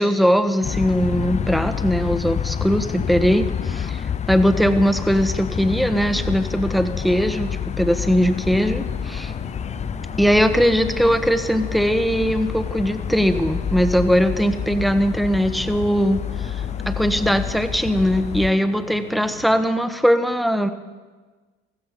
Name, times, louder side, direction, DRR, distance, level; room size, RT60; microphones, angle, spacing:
voice 1, 0.0-9.3 10.2-20.7, equal, ahead, 9 dB, 1.2 m, -20 dB
sound 1, 0.6-18.5, left 8 dB, 20° left, 0.4 m, -28 dB
sound 2, 8.3-19.5, left 1 dB, 85° left, 5.6 m, -41 dB
15.0 x 15.0 x 5.3 m, 1.3 s
hypercardioid pair, 70°, 32 cm